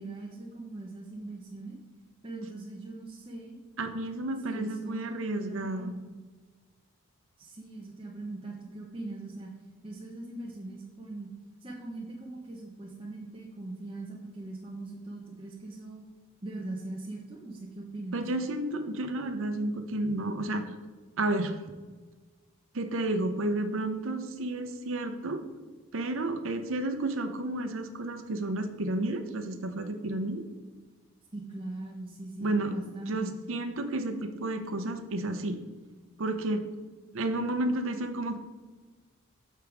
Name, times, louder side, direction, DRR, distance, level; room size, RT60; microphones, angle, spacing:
voice 1, 0.0-1.8 2.2-3.6 4.4-6.0 7.4-9.5 9.8-11.3 11.6-16.0 16.4-18.2 31.3-33.3, right 2 dB, 25° right, -3 dB, 0.7 m, -41 dB
voice 2, 3.8-6.0 18.1-20.6 21.2-21.5 22.7-25.4 25.9-30.4 32.4-32.8 33.1-35.6 36.2-36.6 37.1-38.4, right 2 dB, 70° right, 8 dB, 0.7 m, -31 dB
6.9 x 4.6 x 4.9 m, 1.4 s
head